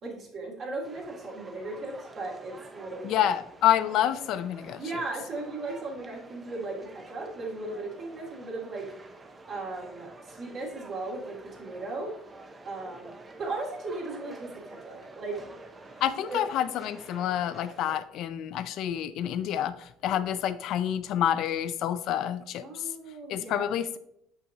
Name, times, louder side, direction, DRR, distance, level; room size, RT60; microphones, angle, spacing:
voice 1, 0.0-3.1 4.8-8.9 9.5-12.1 12.6-13.1 13.4-15.5 16.3-16.4 17.9-18.0 22.6-23.7, right 2 dB, 40° right, -3 dB, 2.3 m, -37 dB
sound 1, 0.8-17.9, right 2 dB, 15° right, 0.5 m, -48 dB
voice 2, 3.0-4.8 16.0-22.9 23.3-24.0, left 10 dB, 50° left, 11 dB, 0.4 m, -28 dB
7.3 x 5.5 x 2.7 m, 0.76 s
cardioid pair, 160°, 0 cm